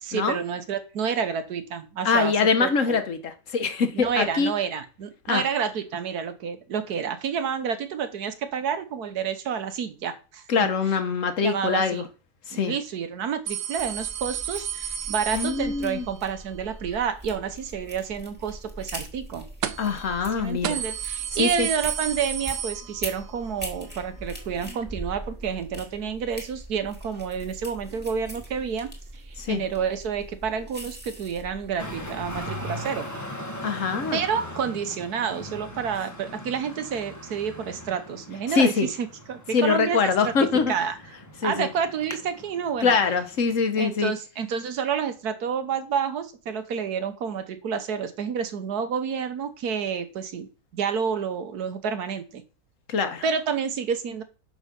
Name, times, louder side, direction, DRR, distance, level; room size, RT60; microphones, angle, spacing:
voice 1, 0.0-3.0 3.9-10.4 11.4-12.0 12.5-19.5 20.4-33.1 34.1-40.3 40.7-41.0 41.4-43.0 43.8-52.4 53.2-54.2, right 7 dB, 70° right, 1.5 m, -29 dB
voice 2, 2.0-4.5 5.3-5.4 10.5-12.0 12.5-12.7 15.3-16.0 19.8-20.8 21.3-21.7 29.4-29.6 33.6-34.2 38.5-38.9 39.5-40.7 41.4-41.7 42.8-44.1 52.9-53.2, left 5 dB, 55° left, 1.3 m, -23 dB
sound 1, 13.5-16.2 19.6-20.0 20.3-20.4 20.6-23.4 23.7-23.8 24.8-24.9, right 9 dB, 85° right, 1.3 m, -32 dB
sound 2, 13.8-32.5, right 1 dB, 5° right, 2.0 m, -41 dB
Traffic noise roadway noise, 31.8-43.6, equal, 10° left, 1.2 m, -39 dB
6.5 x 6.3 x 5.2 m
omnidirectional pair, 1.8 m